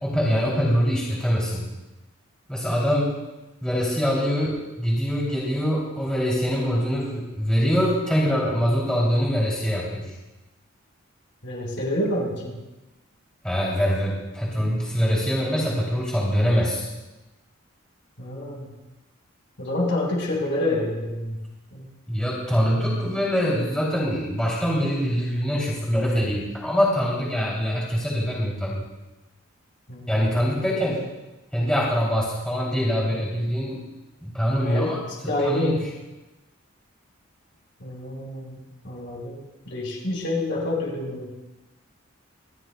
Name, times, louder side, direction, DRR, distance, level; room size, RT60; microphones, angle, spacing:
voice 1, 0.0-1.6 2.5-3.2 3.6-10.1 13.4-16.9 22.1-28.9 30.1-31.0 31.5-33.8 34.2-35.0 35.4-35.8, equal, 5° left, -6 dB, 2.8 m, -24 dB
voice 2, 11.4-12.5 18.2-18.7 19.6-21.4 21.7-21.9 29.9-30.9 34.6-35.8 37.8-39.4 39.7-41.3, left 1 dB, 60° left, -2 dB, 4.4 m, -28 dB
27.0 x 12.0 x 2.2 m, 1.0 s
head